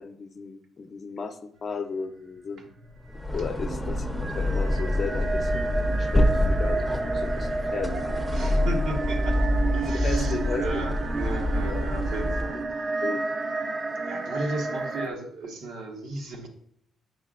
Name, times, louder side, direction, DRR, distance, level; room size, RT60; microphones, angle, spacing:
voice 1, 0.0-2.7 3.3-5.7 6.0-8.3 9.9-10.6 11.6-11.9 12.5-12.6 13.0-13.2, left 5 dB, 45° left, 7 dB, 0.6 m, -35 dB
sound 1, 2.5-15.1, right 3 dB, 45° right, 0.6 m, -31 dB
sound 2, 3.0-12.6, left 1 dB, ahead, 0.7 m, -26 dB
voice 2, 8.3-9.4 9.7-12.9 14.0-16.5, right 2 dB, 80° right, 1 dB, 1.2 m, -35 dB
7.7 x 5.6 x 2.4 m, 0.68 s
cardioid pair, 90°, 0 cm